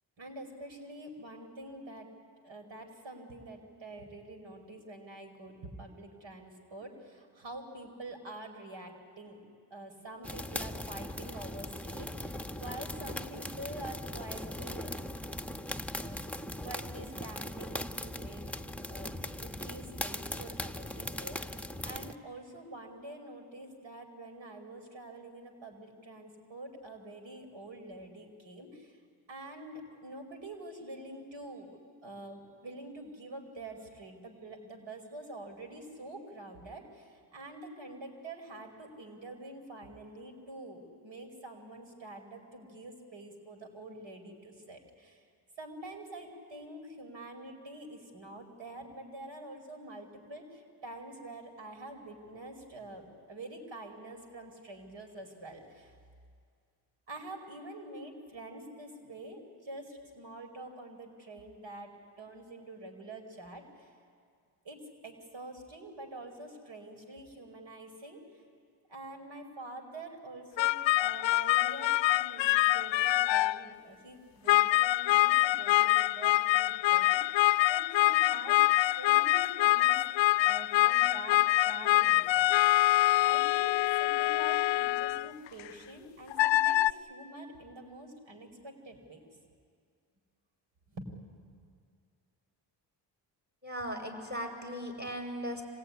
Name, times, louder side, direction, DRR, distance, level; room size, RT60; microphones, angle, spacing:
voice 1, 0.2-2.1 2.4-9.4 9.7-15.0 16.0-16.2 16.6-18.4 18.9-19.1 19.4-29.0 29.3-31.8 32.0-45.2 45.6-55.9 57.1-63.9 64.6-68.4 68.9-77.4 77.7-78.6 79.0-80.0 80.4-82.5 82.7-82.9 83.2-89.2 90.9-91.6, right 2 dB, 65° right, 5 dB, 4.9 m, -46 dB
sound 1, 10.2-22.1, left 1 dB, 5° left, 1.1 m, -39 dB
sound 2, 70.6-73.6 74.5-85.7 86.3-86.9, left 17 dB, 65° left, 0.5 m, -25 dB
voice 2, 93.6-95.6, equal, 20° right, 2 dB, 6.8 m, -37 dB
26.0 x 18.5 x 9.8 m, 2.1 s
supercardioid pair, 50°, 48 cm